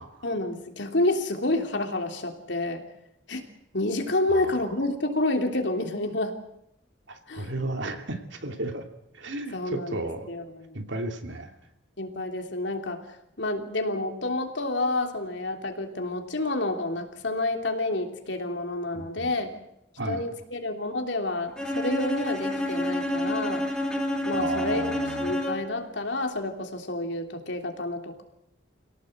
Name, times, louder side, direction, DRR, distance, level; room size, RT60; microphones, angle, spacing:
voice 1, 0.2-2.8 3.3-3.5 3.7-6.4 7.3-7.5 9.5-10.8 12.0-13.0 13.4-19.5 20.1-23.6 24.2-24.8 25.2-28.2, left 2 dB, 70° left, 4 dB, 3.2 m, -29 dB
voice 2, 4.3-4.7 7.1-8.9 9.1-10.3 10.7-11.5 18.9-19.3 20.0-20.2 24.3-25.4, right 2 dB, 75° right, 5 dB, 2.8 m, -34 dB
Bowed string instrument, 21.6-25.8, left 1 dB, 5° left, 3.1 m, -29 dB
27.0 x 17.5 x 7.9 m, 0.83 s
head